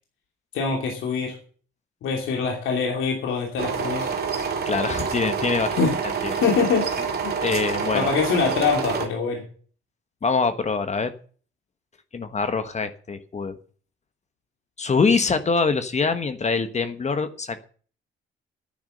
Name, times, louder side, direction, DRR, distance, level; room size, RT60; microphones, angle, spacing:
voice 1, 0.5-1.3 2.0-4.1 5.7-5.9 6.3-7.5 7.9-9.4, left 5 dB, 85° left, 1 dB, 2.9 m, -24 dB
sound 1, 3.6-9.1, right 6 dB, 55° right, 2.3 m, -27 dB
voice 2, 4.7-5.9 6.2-6.3 7.4-8.1 10.2-11.1 12.1-13.5 14.8-17.6, left 4 dB, 35° left, 9 dB, 1.3 m, -24 dB
10.5 x 9.7 x 6.7 m, 0.43 s
cardioid pair, 90°, 20 cm